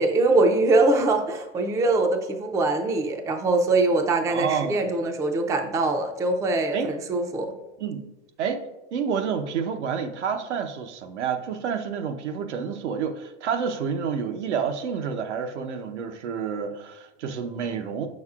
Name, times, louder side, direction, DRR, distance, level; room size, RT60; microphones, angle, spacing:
voice 1, 0.0-7.5, right 2 dB, 10° right, 5 dB, 0.4 m, -23 dB
voice 2, 4.3-4.9 6.7-6.9 7.8-8.1 8.4-8.7 8.9-18.1, right 6 dB, 80° right, 7 dB, 0.9 m, -29 dB
8.6 x 6.4 x 2.4 m, 1.0 s
hypercardioid pair, 125°, 34 cm